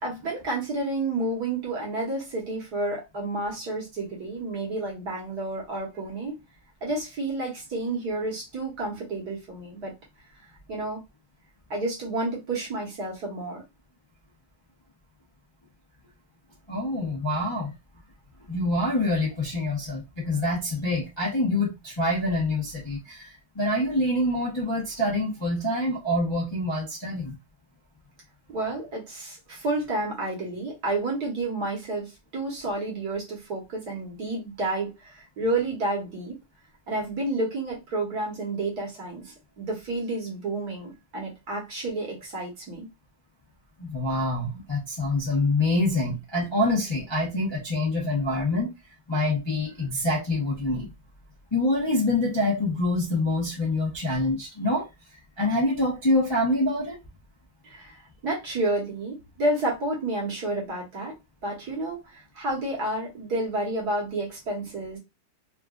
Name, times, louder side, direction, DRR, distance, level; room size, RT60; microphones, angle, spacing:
voice 1, 0.0-6.4 6.8-9.9 10.7-11.0 11.7-13.6 28.5-36.3 36.9-42.9 57.6-61.2 61.4-62.0 62.3-65.0, right 2 dB, 55° right, 1.6 m, -30 dB
voice 2, 16.7-17.7 18.5-27.3 43.8-48.7 49.1-50.9 51.5-54.9 55.4-57.0, left 1 dB, 20° left, 0.7 m, -26 dB
3.7 x 2.5 x 2.3 m
omnidirectional pair, 2.2 m